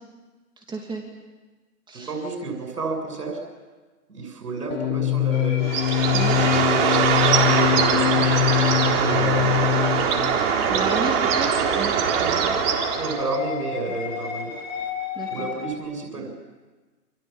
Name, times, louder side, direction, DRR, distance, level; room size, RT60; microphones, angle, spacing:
voice 1, 0.6-1.0 1.9-2.1 6.1-6.4 10.7-12.6 13.9-14.0 15.1-15.5, right 4 dB, 10° right, 1 dB, 2.7 m, -32 dB
voice 2, 1.9-3.4 4.1-5.7 6.5-8.3 8.8-10.1 10.3-11.0 13.0-14.5 15.3-16.3, right 3 dB, 85° right, 3 dB, 7.2 m, -31 dB
sound 1, 4.7-10.4, left 15 dB, 35° left, 1.2 m, -23 dB
sound 2, 5.3-15.7, left 6 dB, 55° left, 6.9 m, -36 dB
Bird, 5.6-13.4, right 7 dB, 40° right, 3.7 m, -22 dB
28.5 x 27.0 x 7.3 m, 1.3 s
hypercardioid pair, 140°, 47 cm